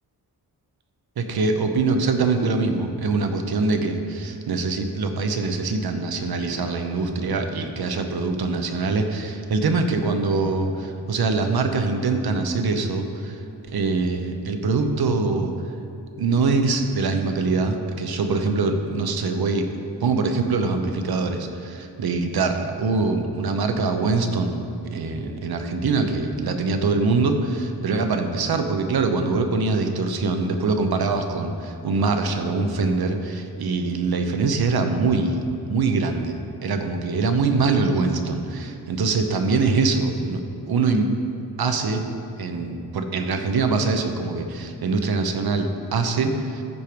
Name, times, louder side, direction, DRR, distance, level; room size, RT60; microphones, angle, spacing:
voice 1, 1.2-13.4 13.7-15.5 16.2-19.7 20.0-24.7 24.9-35.4 35.7-40.4 40.7-41.1 41.6-42.0 42.4-46.6, right 3 dB, 70° right, 6 dB, 0.9 m, -23 dB
13.5 x 5.1 x 4.6 m, 2.7 s
wide cardioid pair, 155°, 39 cm